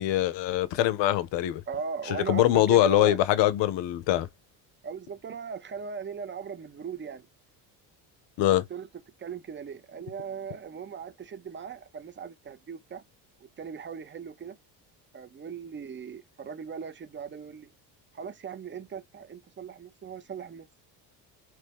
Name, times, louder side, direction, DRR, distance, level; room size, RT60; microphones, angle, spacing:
voice 1, 0.0-1.6 2.1-4.3 8.4-8.6, left 13 dB, 60° left, 0.6 m, -23 dB
voice 2, 1.7-3.2 4.8-7.3 8.4-8.9 9.2-13.0 13.4-14.6 15.1-17.7 18.1-20.7, right 6 dB, 25° right, 0.5 m, -38 dB
3.0 x 2.1 x 3.3 m
supercardioid pair, 65°, 49 cm